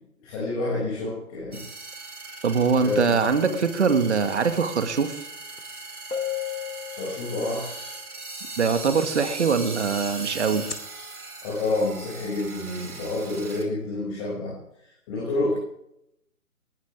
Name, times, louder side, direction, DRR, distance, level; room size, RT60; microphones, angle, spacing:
voice 1, 0.2-1.6 2.8-3.1 6.9-7.7 11.4-14.5 15.1-15.6, left 2 dB, 25° left, -7 dB, 6.5 m, -28 dB
sound 1, 1.5-13.7, right 3 dB, 70° right, 4.5 m, -39 dB
voice 2, 2.4-5.2 8.6-10.7, right 5 dB, 45° right, 9 dB, 2.0 m, -22 dB
sound 2, 5.6-5.7 6.1-7.8 10.5-10.8, left 9 dB, 75° left, 3.2 m, -33 dB
20.5 x 17.5 x 3.6 m, 0.78 s
figure-of-eight pair, 150°, 46 cm